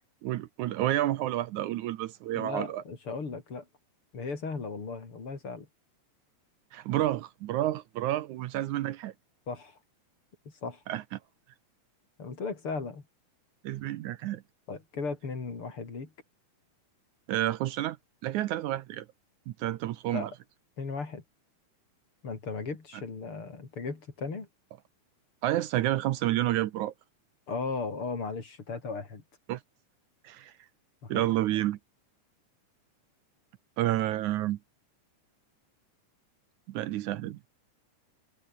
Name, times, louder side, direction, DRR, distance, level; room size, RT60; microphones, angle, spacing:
voice 1, 0.2-2.8 6.7-9.1 10.9-11.2 13.6-14.4 17.3-18.0 18.2-19.1 19.5-20.3 25.4-26.9 29.5-29.6 30.2-30.5 31.1-31.8 33.8-34.6 36.7-37.4, right 14 dB, 75° right, 2.1 m, -30 dB
voice 2, 2.3-3.7 4.1-5.7 9.5-9.8 10.6-10.8 12.2-13.0 14.7-16.1 20.1-20.3 20.8-21.2 22.2-24.5 27.5-29.2 31.0-31.2, left 4 dB, 40° left, 4.5 m, -36 dB
omnidirectional pair, 3.7 m